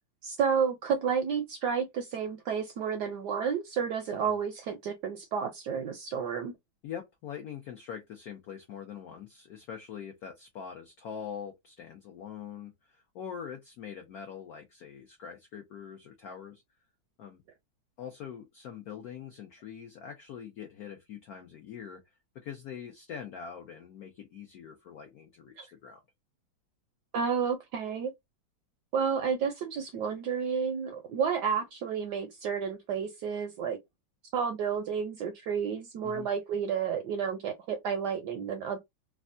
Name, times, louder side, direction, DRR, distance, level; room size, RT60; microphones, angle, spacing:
voice 1, 0.2-6.5 25.6-25.7 27.1-28.1 28.9-33.8 34.3-38.8, right 6 dB, 75° right, 0.9 m, -31 dB
voice 2, 6.8-16.6 17.2-17.4 18.0-22.0 22.3-26.0 36.0-36.3, left 8 dB, 90° left, 0.8 m, -43 dB
3.4 x 2.1 x 2.5 m
omnidirectional pair, 2.2 m